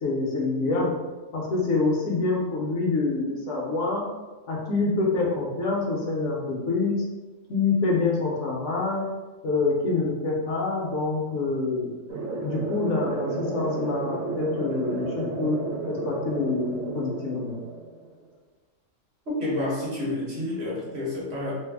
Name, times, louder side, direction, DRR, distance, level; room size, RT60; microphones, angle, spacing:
voice 1, 0.0-0.9 1.3-4.0 4.5-7.0 7.5-9.0 9.4-11.9 12.4-15.6 15.9-17.6, left 3 dB, 70° left, -3 dB, 1.0 m, -26 dB
sound 1, 12.1-18.1, right 3 dB, 90° right, 1.1 m, -32 dB
voice 2, 19.4-21.5, left 1 dB, 55° right, -5 dB, 1.1 m, -29 dB
3.2 x 2.0 x 3.4 m, 1.2 s
omnidirectional pair, 1.4 m